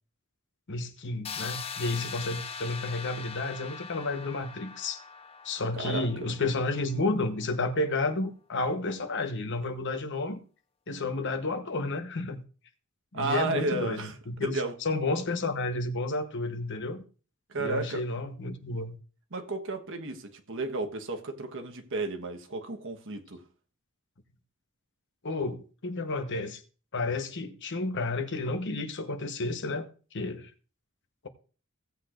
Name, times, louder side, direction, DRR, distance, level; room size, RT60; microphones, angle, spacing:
voice 1, 0.7-5.0 5.4-10.4 10.9-12.4 13.1-17.0 17.6-19.0 25.2-26.6 26.9-29.9 30.1-30.5, left 2 dB, 55° left, 1.1 m, -31 dB
sound 1, 1.2-7.0, left 6 dB, 25° left, 0.4 m, -41 dB
voice 2, 5.7-6.1 13.1-14.7 17.5-18.0 19.3-23.4, right 3 dB, 60° right, 1.3 m, -33 dB
16.5 x 8.1 x 2.5 m
head